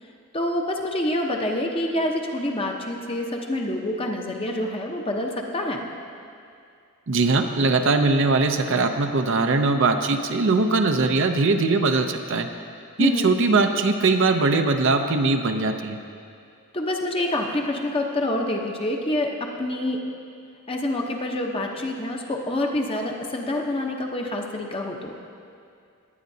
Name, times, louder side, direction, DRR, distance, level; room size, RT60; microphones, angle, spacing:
voice 1, 0.3-5.9 13.0-13.3 16.7-20.0 20.7-25.1, left 1 dB, 25° left, 1 dB, 0.8 m, -27 dB
voice 2, 7.1-12.5 13.0-16.0, right 3 dB, 55° right, 6 dB, 0.6 m, -21 dB
19.5 x 9.4 x 2.7 m, 2.4 s
head